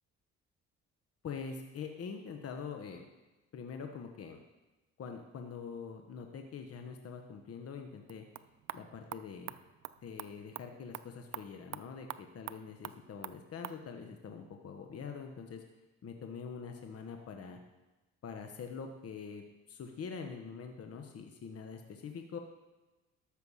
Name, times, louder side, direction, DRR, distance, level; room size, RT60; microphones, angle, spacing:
voice 1, 1.2-3.1 3.5-4.4 5.0-8.2 8.7-9.5 10.0-15.6 16.0-17.6 18.2-22.4, left 6 dB, 50° left, 4 dB, 1.1 m, -44 dB
sound 1, 8.0-13.8, right 13 dB, 65° right, 0.5 m, -47 dB
13.0 x 6.6 x 5.6 m, 1.1 s
cardioid pair, 90°, 30 cm